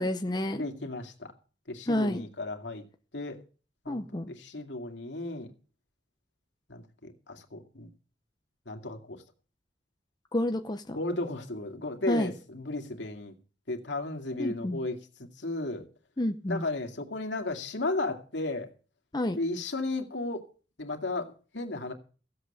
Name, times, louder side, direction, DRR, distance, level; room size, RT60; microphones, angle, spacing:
voice 1, 0.0-0.7 1.9-2.2 3.9-4.3 10.3-11.0 12.1-12.3 14.4-14.8 16.2-16.6 19.1-19.4, left 1 dB, 25° left, 0.8 m, -29 dB
voice 2, 0.5-1.3 1.7-2.8 3.1-3.4 3.8-5.5 6.7-7.9 8.7-9.2 10.9-13.3 13.7-15.9 16.5-18.7 19.3-20.4 20.8-21.9, left 2 dB, 75° left, 2.4 m, -34 dB
16.0 x 8.1 x 6.6 m
head